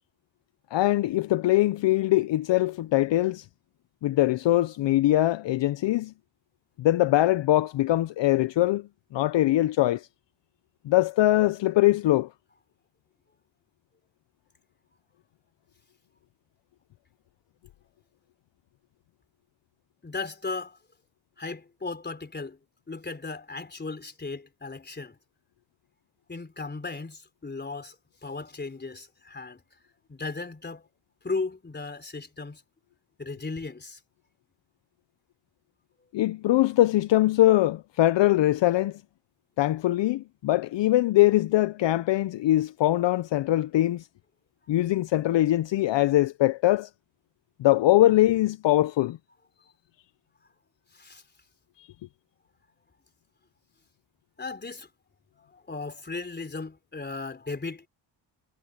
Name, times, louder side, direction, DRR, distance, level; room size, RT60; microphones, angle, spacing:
voice 1, 0.7-3.5 4.0-6.1 6.8-10.1 10.8-12.3 36.1-39.0 39.6-44.1 44.7-46.9 47.6-49.2 51.8-51.9, left 15 dB, 65° left, 0.6 m, -22 dB
voice 2, 20.0-20.8 21.4-22.6 22.9-25.2 26.3-28.0 28.2-29.6 30.1-30.9 31.2-32.6 33.2-34.0 50.9-51.2 54.4-54.9 55.4-57.9, left 3 dB, 20° left, 3.6 m, -36 dB
cardioid pair, 125°, 47 cm